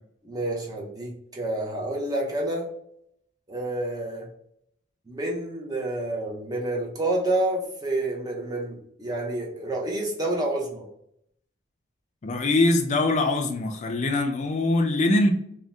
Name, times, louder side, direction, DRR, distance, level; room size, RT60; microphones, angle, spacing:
voice 1, 0.2-2.7 3.5-4.3 5.1-10.9, right 1 dB, 20° right, -2 dB, 0.6 m, -29 dB
voice 2, 12.2-15.3, left 2 dB, 35° left, 4 dB, 0.4 m, -23 dB
2.6 x 2.1 x 3.3 m, 0.72 s
head